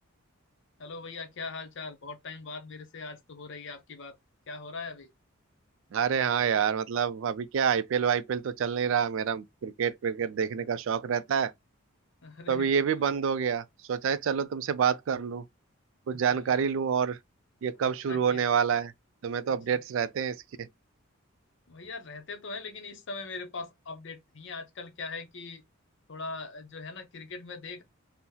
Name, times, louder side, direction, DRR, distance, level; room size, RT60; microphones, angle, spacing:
voice 1, 0.8-4.2 4.5-5.1 12.2-12.7 16.1-16.7 17.8-18.5 19.7-19.8 21.7-25.6 26.1-27.8, left 4 dB, 55° left, 0.6 m, -41 dB
voice 2, 5.9-11.5 12.5-15.4 16.1-17.2 17.6-18.9 19.2-20.7, right 7 dB, 60° right, 0.3 m, -27 dB
2.7 x 2.0 x 3.7 m
head